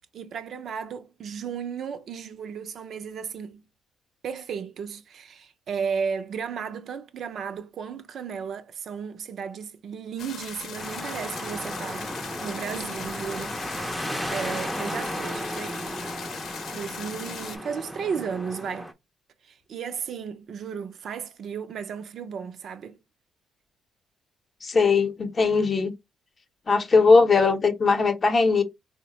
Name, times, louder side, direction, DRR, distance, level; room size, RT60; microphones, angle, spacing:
voice 1, 0.1-3.6 4.2-12.1 12.4-13.6 14.3-15.8 16.7-18.9 19.4-23.0, right 6 dB, 60° right, 0.5 m, -34 dB
sound 1, 10.2-17.6, left 6 dB, 70° left, 0.7 m, -39 dB
sound 2, 10.8-18.9, equal, ahead, 0.5 m, -34 dB
voice 2, 24.6-25.9 26.7-28.6, left 4 dB, 40° left, 0.7 m, -20 dB
3.9 x 2.1 x 2.8 m
cardioid pair, 90°, 0 cm